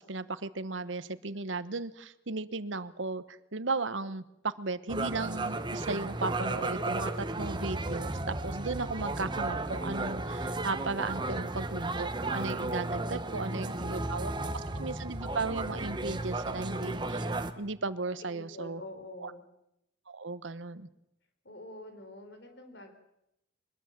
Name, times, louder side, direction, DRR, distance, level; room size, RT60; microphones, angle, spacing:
voice 1, 0.0-18.8 19.2-19.3 20.1-20.9, right 3 dB, 85° right, 15 dB, 1.1 m, -36 dB
sound 1, 4.9-17.5, right 2 dB, 25° right, 1.3 m, -34 dB
voice 2, 13.1-14.5 18.3-19.4 21.4-22.9, left 1 dB, 65° left, 7 dB, 4.2 m, -47 dB
24.0 x 20.5 x 7.5 m, 0.82 s
head